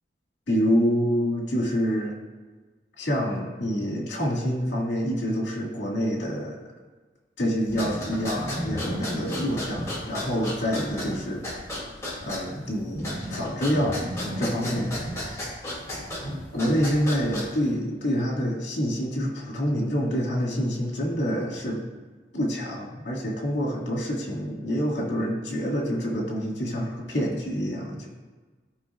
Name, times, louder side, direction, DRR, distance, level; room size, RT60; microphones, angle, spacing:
voice 1, 0.5-2.2 3.0-6.7 7.4-11.4 12.2-15.6 16.5-21.8 22.3-28.1, equal, 75° left, -2 dB, 2.0 m, -27 dB
sound 1, 7.6-17.7, equal, 15° left, 2.1 m, -33 dB
13.5 x 5.2 x 2.4 m, 1.3 s
head